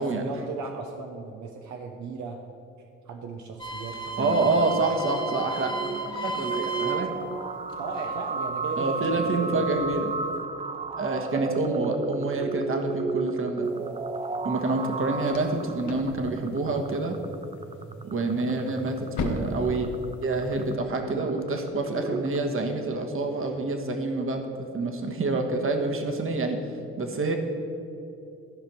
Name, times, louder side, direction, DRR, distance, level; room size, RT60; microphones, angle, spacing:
voice 1, 0.0-2.4 3.0-4.6 7.8-9.7 14.8-14.9, right 4 dB, 70° right, 2 dB, 0.9 m, -36 dB
sound 1, 3.6-7.3 7.6-9.1 9.6-10.1, right 3 dB, 15° left, 1.6 m, -34 dB
sound 2, 4.2-22.4, right 4 dB, 20° right, 0.4 m, -34 dB
voice 2, 4.2-5.7 6.2-7.1 8.8-10.1 11.0-13.7 14.4-17.2 18.0-19.9 20.2-26.6 27.0-27.4, right 2 dB, 45° right, 4 dB, 1.4 m, -27 dB
sound 3, 13.6-20.8, left 3 dB, 75° left, 1.2 m, -39 dB
13.5 x 5.1 x 6.1 m, 2.8 s
cardioid pair, 90°, 30 cm